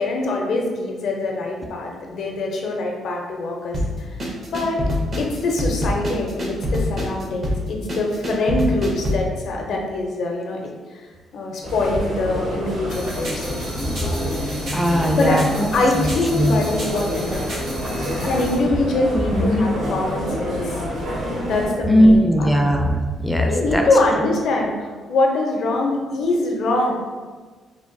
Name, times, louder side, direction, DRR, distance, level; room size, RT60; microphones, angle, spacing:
voice 1, 0.0-4.2 4.5-4.8 5.2-11.0 11.3-13.6 15.1-15.4 15.7-17.5 18.2-20.8 21.4-22.5 23.5-26.9, left 2 dB, 70° left, 0 dB, 0.5 m, -23 dB
sound 1, 3.7-9.3, left 1 dB, 45° right, 0.6 m, -24 dB
sound 2, 11.6-21.7, equal, 70° right, 1.4 m, -28 dB
sound 3, 12.9-18.6, right 1 dB, 90° right, 1.2 m, -35 dB
voice 2, 14.7-15.7 16.0-16.6 19.3-19.6 21.9-23.8, equal, ahead, 2 dB, 0.4 m, -18 dB
3.3 x 2.2 x 2.5 m, 1.4 s
cardioid pair, 90°, 0 cm